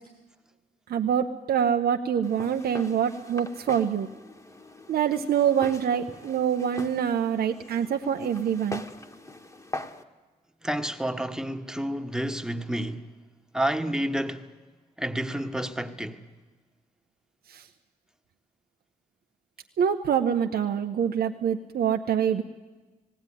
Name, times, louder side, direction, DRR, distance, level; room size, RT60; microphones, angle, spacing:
voice 1, 0.9-4.1 4.9-8.8 17.5-17.7 19.8-22.4, right 8 dB, 90° right, 0.8 m, -25 dB
Walk footsteps, 2.2-10.0, left 1 dB, 20° left, 1.4 m, -42 dB
voice 2, 10.6-13.0 13.5-14.5 15.0-16.3, right 1 dB, 5° right, 1.3 m, -30 dB
18.5 x 16.5 x 9.9 m
cardioid pair, 75°, 16 cm